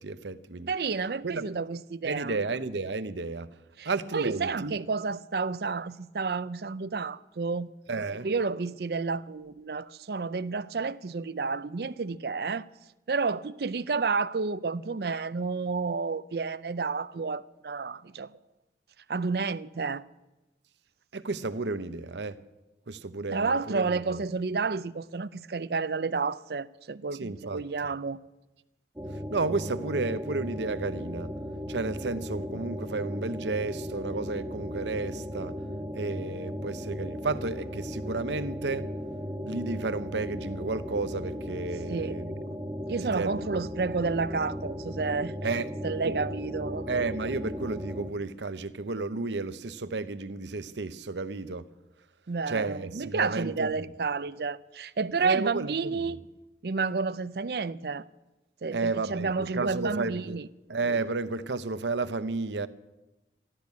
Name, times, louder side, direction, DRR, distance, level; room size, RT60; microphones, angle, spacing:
voice 1, 0.0-0.7 1.2-1.4 2.0-3.5 3.8-4.8 7.9-8.3 21.1-22.4 22.9-24.2 27.2-27.6 29.3-31.3 31.7-35.6 35.9-38.9 39.4-42.4 43.1-43.5 45.4-45.7 46.0-46.1 46.9-51.7 52.5-53.7 55.2-55.7 56.1-56.2 58.7-60.4 60.7-62.7, right 3 dB, 90° right, 0.8 m, -32 dB
voice 2, 0.7-2.4 3.8-7.7 8.2-12.7 13.1-18.3 19.1-20.0 23.3-28.2 41.9-42.2 42.9-46.9 52.3-56.2 56.6-58.1 58.6-60.5, right 4 dB, 65° right, 0.5 m, -30 dB
sound 1, 29.0-48.1, equal, 15° right, 1.2 m, -36 dB
14.0 x 12.5 x 8.3 m
head